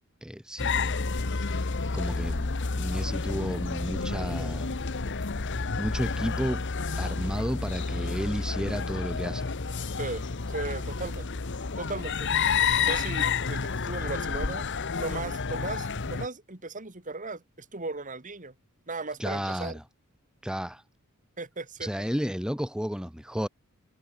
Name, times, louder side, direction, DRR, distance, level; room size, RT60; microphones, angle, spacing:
voice 1, 0.2-0.7 1.3-1.6 1.9-4.8 5.8-6.6 7.0-9.5 19.2-19.8 20.4-20.8 21.8-23.5, equal, 5° right, 1.4 m, -32 dB
sound 1, 0.6-16.3, left 5 dB, 55° left, 1.1 m, -30 dB
voice 2, 10.0-11.3 11.8-12.3 12.9-14.7 15.0-18.5 18.9-19.8 21.4-21.9, right 3 dB, 35° right, 2.7 m, -36 dB
head